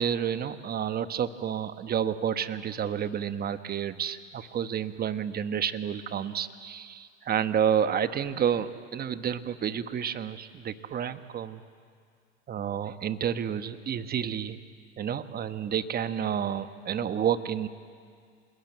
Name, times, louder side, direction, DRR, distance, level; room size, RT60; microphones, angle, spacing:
voice 1, 0.0-11.6 12.5-14.6 15.0-17.7, right 8 dB, 25° right, 11 dB, 1.2 m, -30 dB
27.5 x 21.0 x 9.3 m, 2.2 s
hypercardioid pair, 105°, 35 cm